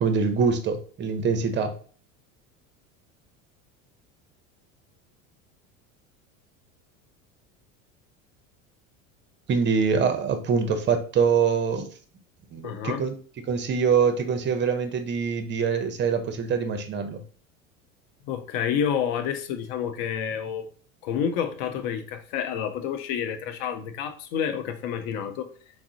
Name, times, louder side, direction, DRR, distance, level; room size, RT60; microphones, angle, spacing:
voice 1, 0.0-1.8 9.5-11.9 12.5-13.1 13.5-17.2, right 6 dB, 25° right, 0.5 m, -24 dB
voice 2, 12.6-13.0 18.2-20.7 21.0-25.5, left 8 dB, 65° left, 0.6 m, -29 dB
3.5 x 2.0 x 2.7 m
hypercardioid pair, 90°, 41 cm